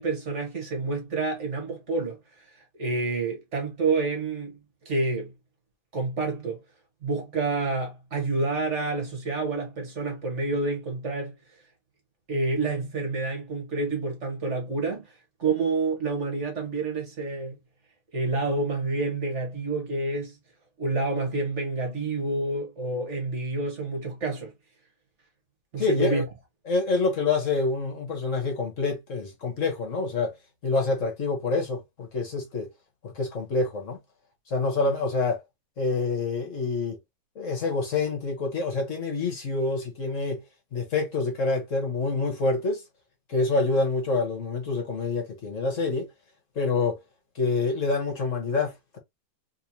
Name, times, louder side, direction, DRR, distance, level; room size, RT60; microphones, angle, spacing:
voice 1, 0.0-2.2 2.8-4.6 4.9-5.3 5.9-6.6 7.0-11.3 12.3-15.1 15.4-17.6 18.1-20.4 20.8-24.5 25.7-26.2, right 3 dB, 50° right, 1.7 m, -28 dB
voice 2, 25.8-26.2 26.7-30.3 30.6-32.7 33.0-34.0 34.5-35.4 35.8-37.0 37.3-40.4 40.7-42.8 43.3-46.1 46.5-47.0 47.3-49.0, left 3 dB, 55° left, 1.5 m, -27 dB
3.4 x 3.3 x 2.8 m
omnidirectional pair, 1.6 m